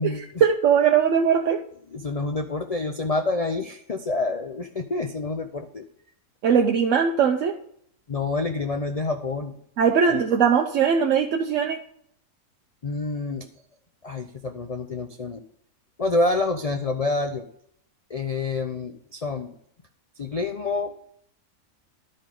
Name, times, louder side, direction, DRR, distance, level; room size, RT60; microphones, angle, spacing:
voice 1, 0.4-1.6 6.4-7.5 9.8-11.8, right 7 dB, 65° right, 3 dB, 0.9 m, -20 dB
voice 2, 1.9-5.8 8.1-9.6 10.1-10.2 12.8-13.5 14.0-15.4 16.0-17.5 18.1-19.5 20.2-20.9, left 3 dB, 65° left, 5 dB, 0.3 m, -27 dB
12.0 x 5.2 x 3.8 m, 0.68 s
omnidirectional pair, 1.6 m